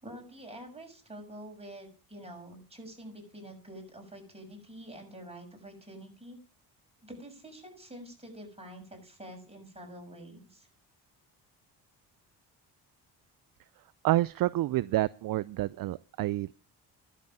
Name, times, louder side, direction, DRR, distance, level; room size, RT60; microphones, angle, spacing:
voice 1, 0.0-6.4 7.0-10.7, right 1 dB, 15° right, 1 dB, 6.5 m, -47 dB
voice 2, 14.0-16.5, right 15 dB, 50° right, 19 dB, 0.5 m, -28 dB
11.5 x 7.8 x 7.1 m, 0.40 s
supercardioid pair, 60°, 44 cm